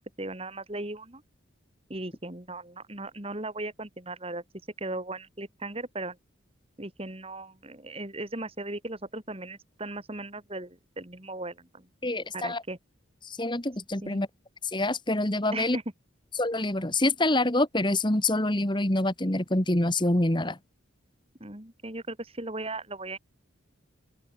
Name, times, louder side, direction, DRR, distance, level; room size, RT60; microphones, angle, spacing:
voice 1, 0.2-1.2 1.9-4.4 4.8-6.2 6.8-11.9 12.3-12.8 14.0-14.2 15.5-15.8 21.4-23.2, right 2 dB, 30° right, 2.9 m, -37 dB
voice 2, 12.0-12.6 13.2-14.3 14.7-15.8 16.4-20.6, left 1 dB, 25° left, 1.8 m, -26 dB
open air
head